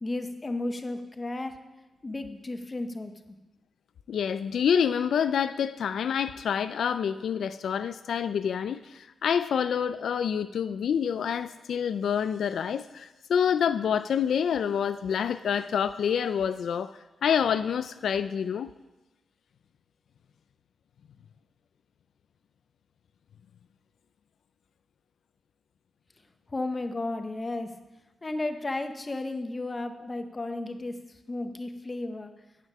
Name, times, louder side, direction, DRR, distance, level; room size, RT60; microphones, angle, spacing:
voice 1, 0.0-1.5 2.0-3.1 26.5-27.7 28.2-31.0 31.3-32.3, left 2 dB, 20° left, 7 dB, 0.8 m, -33 dB
voice 2, 4.1-16.9 17.2-18.7, left 7 dB, 80° left, 12 dB, 0.3 m, -27 dB
9.3 x 9.3 x 5.5 m, 1.1 s
wide cardioid pair, 155°, 0 cm